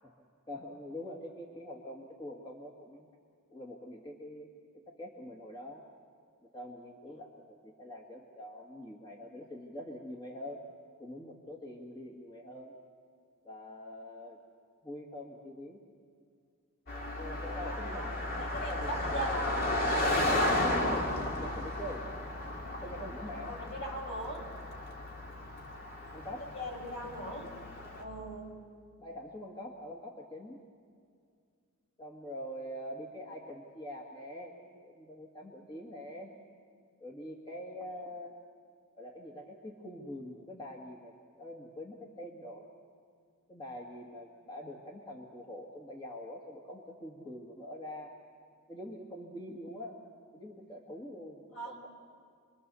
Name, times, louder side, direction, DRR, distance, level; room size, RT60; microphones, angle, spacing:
voice 1, 0.5-3.1 3.5-4.5 4.9-5.8 6.4-10.6 11.0-12.7 13.4-14.4 14.8-15.8 17.2-19.2 20.6-22.1 22.5-23.6 26.1-26.5 29.0-30.6 32.0-36.3 37.0-38.4 38.9-42.7 43.5-48.2 48.7-50.0 50.3-51.9, left 1 dB, 20° left, 0 dB, 1.9 m, -44 dB
Car passing by, 16.9-28.0, left 1 dB, 45° left, 2.6 m, -34 dB
voice 2, 17.4-18.1 18.5-19.6 23.5-24.4 26.5-27.5 28.0-28.5 51.5-51.7, right 1 dB, 65° left, 0 dB, 6.3 m, -40 dB
28.0 x 22.0 x 7.0 m, 2.2 s
head